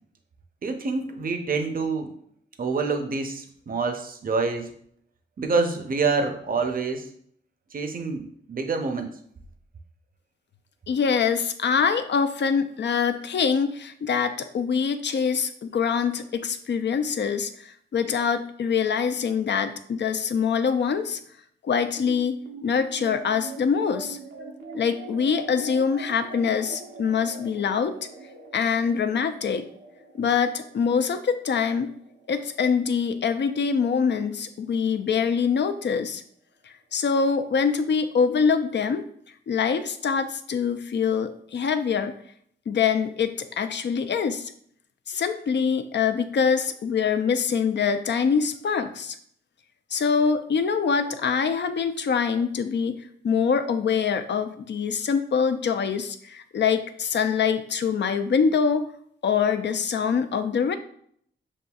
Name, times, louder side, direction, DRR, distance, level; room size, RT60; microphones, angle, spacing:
voice 1, 0.6-2.1 2.6-4.7 5.4-7.1 7.7-9.1, right 4 dB, 45° right, 5 dB, 0.6 m, -27 dB
voice 2, 10.9-21.2 21.6-24.2 24.7-28.0 28.5-29.7 30.2-31.9 32.3-36.2 36.7-39.0 39.5-42.2 42.7-44.5 45.1-49.2 49.9-58.8 59.2-60.8, left 6 dB, 60° left, 9 dB, 0.5 m, -24 dB
sound 1, 22.1-34.7, right 3 dB, 85° right, 0.7 m, -44 dB
6.9 x 2.6 x 2.3 m, 0.65 s
cardioid pair, 70°, 20 cm